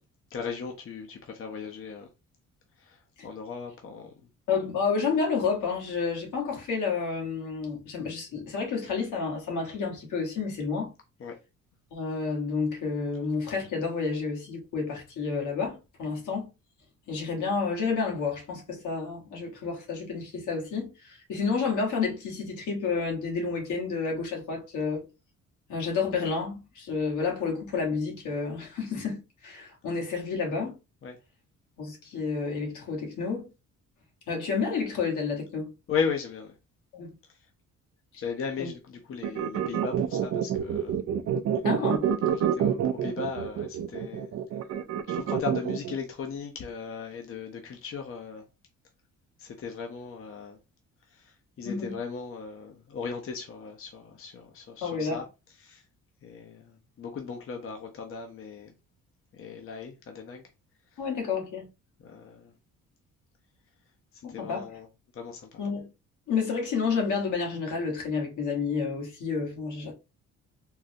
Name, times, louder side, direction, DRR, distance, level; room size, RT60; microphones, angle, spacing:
voice 1, 0.3-2.1 2.8-3.0 3.2-4.1 11.2-11.4 31.0-31.2 35.9-36.5 38.2-41.0 42.3-44.3 45.1-48.4 49.4-50.6 51.1-51.2 51.6-55.2 55.6-55.8 56.2-58.7 59.3-60.4 62.0-62.5 64.3-64.9 65.2-65.5, left 5 dB, 45° left, 0.6 m, -37 dB
voice 2, 4.5-10.9 11.9-16.4 17.1-25.1 25.7-30.8 31.8-33.5 34.3-35.7 36.9-37.1 38.6-38.7 41.6-42.1 51.6-52.0 54.8-55.2 61.0-61.7 64.2-64.8 65.6-65.9 66.3-69.9, left 5 dB, 75° left, 1.3 m, -30 dB
sound 1, 39.2-46.0, right 9 dB, 55° right, 0.5 m, -27 dB
3.7 x 2.0 x 2.6 m
cardioid pair, 90°, 30 cm